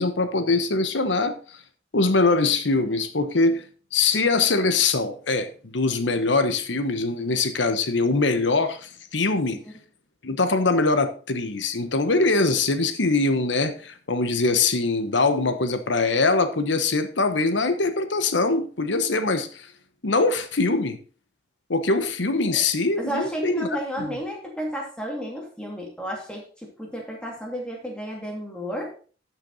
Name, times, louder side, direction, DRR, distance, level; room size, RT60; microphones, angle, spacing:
voice 1, 0.0-1.4 1.9-3.6 3.9-9.6 10.2-19.7 20.0-21.0 21.7-23.7 24.0-24.1, left 3 dB, 85° left, 10 dB, 1.1 m, -23 dB
voice 2, 23.0-29.0, equal, 5° left, -1 dB, 2.5 m, -32 dB
12.0 x 6.2 x 4.1 m, 0.40 s
head